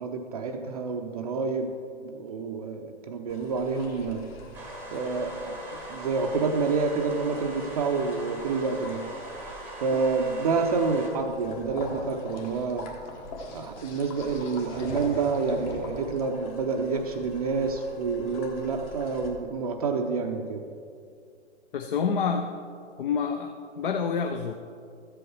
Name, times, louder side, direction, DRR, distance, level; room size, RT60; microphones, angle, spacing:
voice 1, 0.0-1.7 2.0-4.3 4.9-5.6 5.9-9.1 9.8-13.0 13.5-20.7, right 4 dB, 30° right, 5 dB, 0.5 m, -28 dB
sound 1, 3.3-19.3, left 2 dB, 30° left, 1.2 m, -43 dB
sound 2, 4.5-11.1, right 1 dB, 5° right, 0.9 m, -41 dB
voice 2, 21.7-22.5 23.0-24.5, left 6 dB, 45° left, 5 dB, 0.6 m, -28 dB
13.5 x 7.8 x 3.2 m, 2.3 s
figure-of-eight pair, 130°, 36 cm